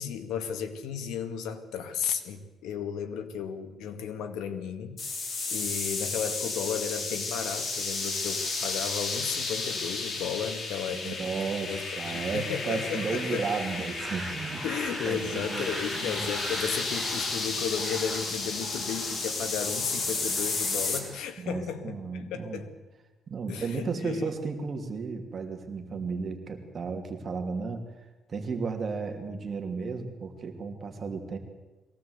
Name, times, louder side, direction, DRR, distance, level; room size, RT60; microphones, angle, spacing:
voice 1, 0.0-11.2 11.7-13.5 14.6-22.7 23.5-24.3, left 7 dB, 90° left, 7 dB, 2.0 m, -34 dB
sound 1, 5.0-21.0, left 3 dB, 40° left, 3.6 m, -33 dB
voice 2, 10.9-14.7 15.0-16.3 21.4-22.6 23.3-27.8 28.3-31.4, right 4 dB, 40° right, 4 dB, 2.9 m, -34 dB
sound 2, 14.0-21.2, right 3 dB, 15° right, 1.6 m, -41 dB
22.5 x 17.5 x 8.1 m, 1.2 s
cardioid pair, 125°, 0 cm